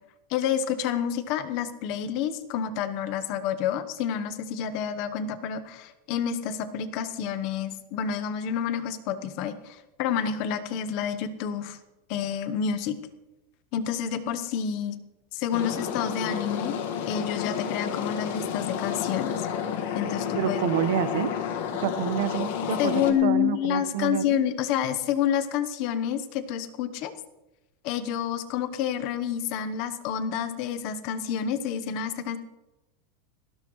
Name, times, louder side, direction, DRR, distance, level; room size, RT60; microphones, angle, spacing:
voice 1, 0.3-11.8 12.1-13.0 13.7-15.0 15.3-16.8 17.1-19.5 19.9-20.6 22.8-27.1 27.8-32.4, left 8 dB, 40° left, 10 dB, 1.0 m, -29 dB
sound 1, 15.5-23.1, left 8 dB, 65° left, 1.7 m, -31 dB
voice 2, 20.3-21.3 21.7-24.2, right 10 dB, 65° right, 12 dB, 1.1 m, -28 dB
18.5 x 16.0 x 3.2 m, 1.0 s
supercardioid pair, 170°, 0 cm